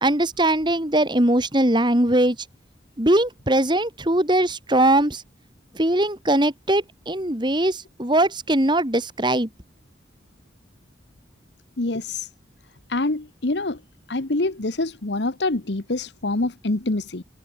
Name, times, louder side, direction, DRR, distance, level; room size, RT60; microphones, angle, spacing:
voice 1, 0.0-2.4 3.0-5.2 5.7-9.5, right 1 dB, 25° right, 2.9 m, -20 dB
voice 2, 11.8-12.3 12.9-13.8 14.1-17.2, left 2 dB, 70° left, 1.3 m, -25 dB
head